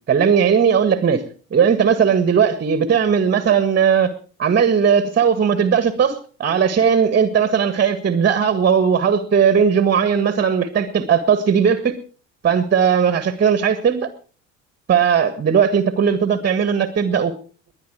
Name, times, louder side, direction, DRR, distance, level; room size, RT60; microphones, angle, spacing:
voice 1, 0.1-1.2 1.5-4.1 4.4-12.0 12.4-14.1 14.9-17.3, right 7 dB, 25° right, 12 dB, 1.6 m, -17 dB
20.5 x 10.5 x 4.9 m, 0.40 s
figure-of-eight pair, 65°, 39 cm